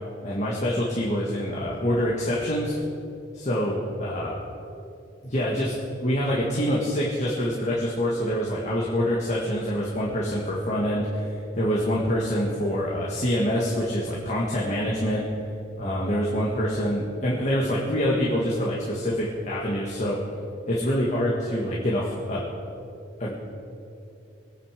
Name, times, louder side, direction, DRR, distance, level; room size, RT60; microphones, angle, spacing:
voice 1, 0.2-2.8 3.3-4.4 5.2-15.2 15.8-20.2 20.7-22.5 23.2-23.3, equal, 40° left, -5 dB, 1.9 m, -26 dB
23.0 x 9.3 x 5.2 m, 2.7 s
head